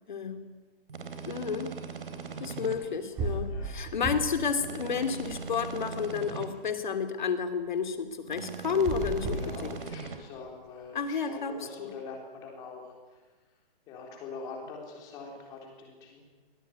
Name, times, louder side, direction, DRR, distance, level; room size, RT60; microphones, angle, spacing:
voice 1, 0.1-0.4 1.2-1.7 2.4-9.8 10.9-11.9, left 6 dB, 50° left, 9 dB, 3.0 m, -31 dB
sound 1, 0.9-2.8 4.6-6.5 8.3-10.2, right 5 dB, 70° right, 4.0 m, -40 dB
sound 2, 2.8-2.9 3.2-4.5 4.8-5.9 8.7-10.2, right 2 dB, 10° right, 2.1 m, -35 dB
voice 2, 3.4-3.7 9.2-13.2 13.9-16.2, left 4 dB, 15° left, 0 dB, 3.9 m, -44 dB
23.5 x 18.0 x 9.5 m, 1.3 s
hypercardioid pair, 175°, 29 cm